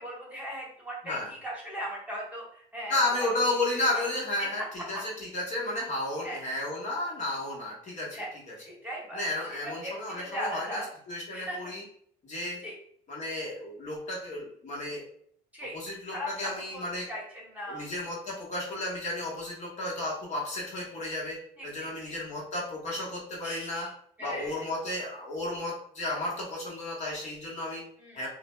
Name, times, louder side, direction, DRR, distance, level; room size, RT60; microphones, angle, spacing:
voice 1, 0.0-3.2 4.4-4.5 4.9-5.0 6.2-6.4 8.1-8.3 8.6-9.3 9.6-10.9 11.3-11.6 12.6-12.7 15.5-15.8 16.0-17.8 21.6-22.1 23.4-23.9 24.2-24.7 28.0-28.2, equal, 10° right, -4 dB, 1.0 m, -38 dB
voice 2, 2.9-8.5 9.1-10.8 11.1-11.8 12.2-12.6 13.1-15.0 15.6-17.1 17.7-23.9 24.2-27.8 28.1-28.3, left 2 dB, 45° left, -3 dB, 1.0 m, -33 dB
2.6 x 2.0 x 3.1 m, 0.63 s
cardioid pair, 110°, 17 cm